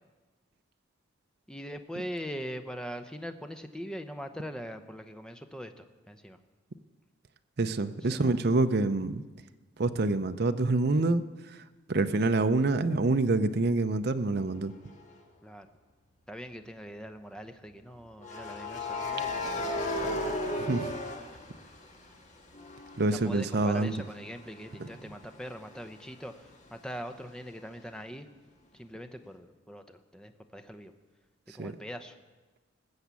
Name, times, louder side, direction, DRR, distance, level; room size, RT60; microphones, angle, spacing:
voice 1, 1.5-6.4 8.1-8.3 15.4-15.7 16.3-20.3 23.1-28.3 28.7-30.9 31.5-32.2, equal, 5° left, 7 dB, 0.7 m, -42 dB
voice 2, 7.6-9.2 9.8-14.7 20.6-20.9 23.0-23.9 24.8-24.9 31.6-31.8, right 2 dB, 50° right, 9 dB, 0.6 m, -27 dB
sound 1, 14.9-15.1 18.2-22.1 22.5-26.1, left 2 dB, 35° left, 1.5 m, -36 dB
19.5 x 7.2 x 8.3 m, 1.3 s
head